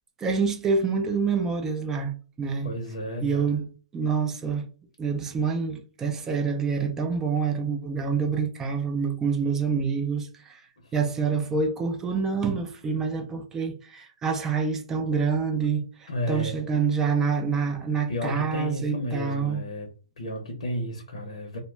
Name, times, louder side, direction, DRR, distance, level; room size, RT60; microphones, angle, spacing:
voice 1, 0.2-2.7 3.2-3.6 3.9-4.6 5.0-10.6 10.9-19.6, right 5 dB, 15° right, 0.4 m, -27 dB
voice 2, 2.6-3.5 10.8-10.9 16.1-16.5 18.1-19.9 20.2-21.6, left 1 dB, 80° left, 0.7 m, -32 dB
2.1 x 2.0 x 3.2 m
hypercardioid pair, 145°, 4 cm